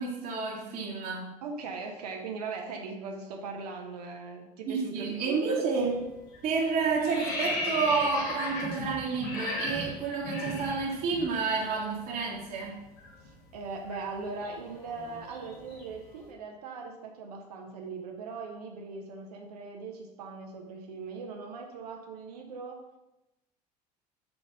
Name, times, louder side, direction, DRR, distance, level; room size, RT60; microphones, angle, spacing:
voice 1, 0.0-1.4 4.7-6.0 6.4-12.8, right 4 dB, 45° right, -2 dB, 1.3 m, -30 dB
voice 2, 1.4-5.7 13.2-23.0, right 4 dB, 65° right, 2 dB, 0.8 m, -40 dB
sound 1, 5.7-6.0 6.3-11.3 11.5-11.7 12.0-16.1, left 2 dB, 60° left, 1.9 m, -36 dB
5.8 x 4.0 x 5.0 m, 0.94 s
figure-of-eight pair, 65°, 21 cm